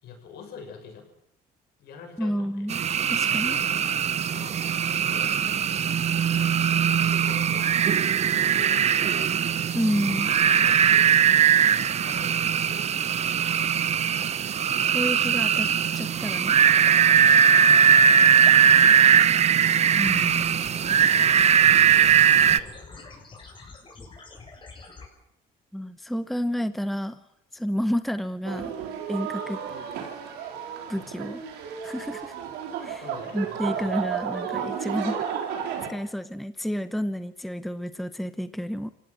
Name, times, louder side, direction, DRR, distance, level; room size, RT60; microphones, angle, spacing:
voice 1, 0.0-1.1 1.8-2.7 3.5-3.8 4.3-5.7 6.6-7.9 8.2-9.3 10.1-10.2 10.5-14.2 17.8-18.2 20.5-23.5 33.0-34.1, left 5 dB, 75° left, 4 dB, 7.0 m, -46 dB
voice 2, 2.2-2.8 3.1-3.6 9.7-10.3 14.9-15.7 15.9-16.6 19.9-20.6 20.9-21.0 25.7-27.2 27.5-28.7 29.1-29.6 30.9-31.4 31.8-32.3 32.8-33.0 33.3-35.2 35.9-38.9, equal, ahead, 12 dB, 0.9 m, -30 dB
sound 1, 2.7-22.6, right 8 dB, 40° right, 0.8 m, -20 dB
sound 2, 20.0-25.1, left 3 dB, 30° left, 7.3 m, -46 dB
sound 3, 28.4-35.9, right 8 dB, 90° right, 4.4 m, -33 dB
27.0 x 16.5 x 7.5 m, 0.78 s
cardioid pair, 110°, 17 cm